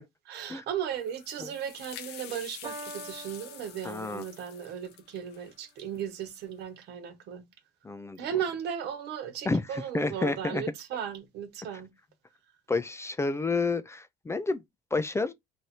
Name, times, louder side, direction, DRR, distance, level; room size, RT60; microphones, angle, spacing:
voice 1, 0.3-7.4 8.2-11.9, right 9 dB, 80° right, 1.1 m, -36 dB
sound 1, 0.9-6.4, left 9 dB, 85° left, 0.8 m, -47 dB
Piano, 2.6-4.6, right 3 dB, 25° right, 0.8 m, -45 dB
voice 2, 3.8-4.2 7.8-8.2 9.5-10.6 12.7-14.6 14.9-15.3, left 3 dB, 15° left, 0.4 m, -30 dB
3.2 x 2.6 x 4.3 m
cardioid pair, 110°, 17 cm